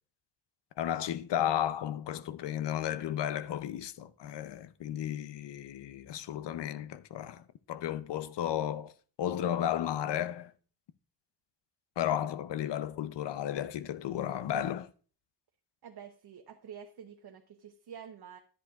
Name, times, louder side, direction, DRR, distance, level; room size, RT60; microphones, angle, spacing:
voice 1, 0.8-7.4 7.7-8.9 9.2-10.5 12.0-14.9, left 11 dB, 85° left, 0.7 m, -33 dB
voice 2, 15.8-18.4, right 8 dB, 65° right, 0.9 m, -48 dB
11.0 x 10.5 x 2.4 m
wide cardioid pair, 120°, 41 cm